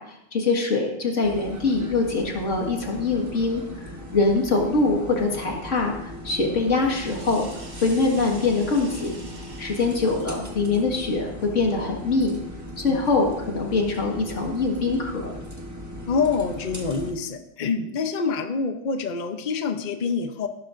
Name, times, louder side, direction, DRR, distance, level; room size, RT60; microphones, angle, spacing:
voice 1, 0.0-7.5 7.8-9.2 9.6-12.4 12.8-15.3, left 3 dB, 45° left, 1 dB, 2.0 m, -23 dB
sound 1, 1.2-17.1, equal, 10° right, 1.0 m, -38 dB
sound 2, 6.9-10.4 13.4-14.3, right 2 dB, 50° right, 2.7 m, -46 dB
voice 2, 16.1-20.5, left 5 dB, 70° left, 7 dB, 0.4 m, -26 dB
14.5 x 12.0 x 2.6 m, 0.84 s
omnidirectional pair, 1.9 m